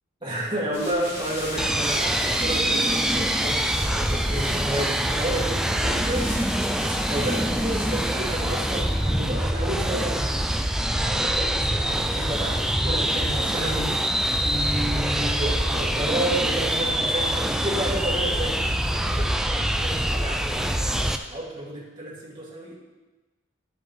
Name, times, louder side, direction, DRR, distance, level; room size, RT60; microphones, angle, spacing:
voice 1, 0.2-18.6 18.9-22.7, right 1 dB, 25° right, -6 dB, 2.4 m, -31 dB
sound 1, 0.7-10.3, left 1 dB, 55° left, 2.9 m, -38 dB
sound 2, 1.6-21.2, right 1 dB, ahead, 0.3 m, -25 dB
11.0 x 7.4 x 3.2 m, 1.2 s
head